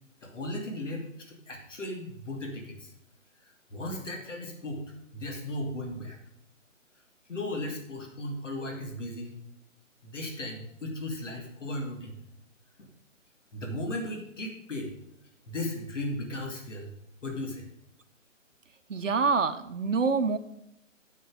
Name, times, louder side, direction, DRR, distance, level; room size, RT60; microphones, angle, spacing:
voice 1, 0.2-2.9 3.7-4.9 5.1-6.2 7.3-9.4 10.0-12.1 12.8-12.9 13.5-14.9 15.5-16.9 17.2-17.6, left 1 dB, 65° left, 2 dB, 2.7 m, -36 dB
voice 2, 18.9-20.4, right 4 dB, 70° right, 8 dB, 1.2 m, -26 dB
9.1 x 8.0 x 5.0 m, 0.76 s
figure-of-eight pair, 155°, 39 cm